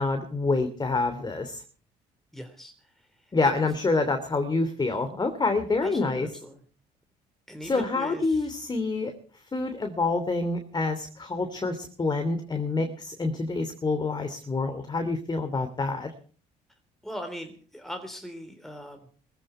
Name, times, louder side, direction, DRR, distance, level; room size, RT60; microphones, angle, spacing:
voice 1, 0.0-1.6 3.3-6.3 7.6-9.1 9.5-16.1, left 3 dB, 25° left, 7 dB, 3.0 m, -27 dB
voice 2, 2.3-2.7 3.4-3.7 5.8-6.6 7.5-8.5 17.0-19.1, equal, ahead, 6 dB, 3.5 m, -40 dB
20.5 x 15.0 x 4.5 m, 0.42 s
supercardioid pair, 85°, 17 cm